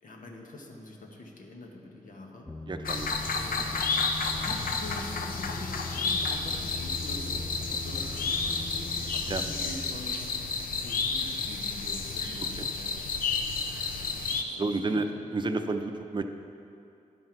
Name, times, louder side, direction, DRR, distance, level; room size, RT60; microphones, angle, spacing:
voice 1, 0.0-2.5 3.3-3.7 4.4-10.2 10.8-13.0 14.4-15.0, left 2 dB, 70° left, 1 dB, 1.3 m, -44 dB
sound 1, 2.5-9.9, left 2 dB, 10° left, 0.6 m, -41 dB
voice 2, 2.7-3.1 9.3-9.4 12.6-12.7 14.6-15.1 15.3-16.2, right 3 dB, 35° right, 7 dB, 0.6 m, -30 dB
sound 2, 2.8-14.4, left 4 dB, 85° left, 0.6 m, -31 dB
12.0 x 5.6 x 4.5 m, 2.6 s
cardioid pair, 65°, 14 cm